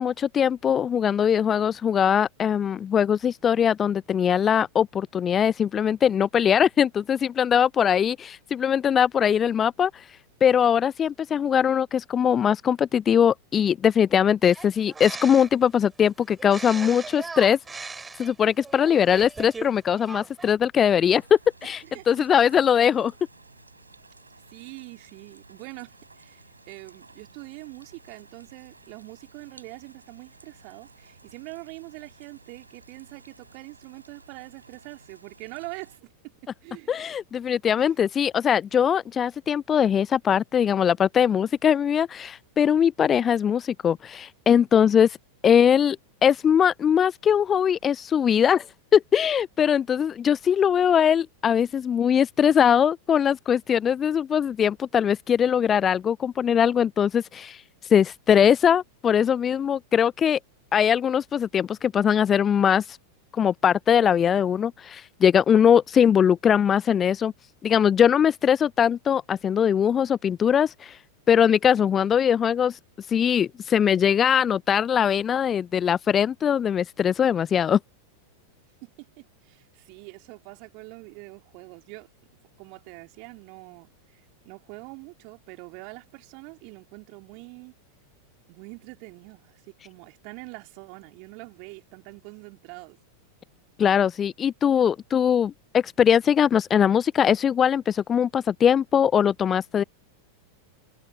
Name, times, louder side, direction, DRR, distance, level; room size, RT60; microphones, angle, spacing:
voice 1, 0.0-10.0 10.4-17.6 18.2-23.1 36.9-45.2 45.4-46.0 46.2-48.6 48.9-57.6 57.9-60.4 60.7-63.0 63.3-67.3 67.6-71.0 71.3-72.8 73.1-77.8 93.8-99.8, left 8 dB, 25° left, 0.4 m, -21 dB
sound 1, 14.4-15.7 16.4-19.7 19.9-20.5, right 4 dB, 10° right, 4.3 m, -39 dB
sound 2, 21.1-36.0, right 3 dB, 80° right, 6.5 m, -54 dB
voice 2, 21.8-22.3 24.5-37.0 37.8-37.9 78.8-82.1 82.6-87.7 88.5-93.0, right 35 dB, 45° right, 3.6 m, -44 dB
figure-of-eight pair, 90°, 0 cm